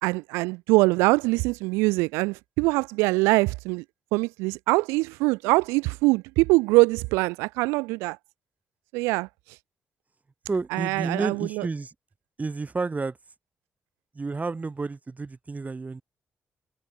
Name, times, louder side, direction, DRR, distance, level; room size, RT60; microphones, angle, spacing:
voice 1, 0.0-3.8 4.1-8.2 8.9-9.6 10.7-11.7, right 25 dB, 90° right, 0.4 m, -23 dB
voice 2, 10.5-11.9 12.4-13.2 14.1-16.0, right 3 dB, 35° right, 3.0 m, -30 dB
hypercardioid pair, 45°, 4 cm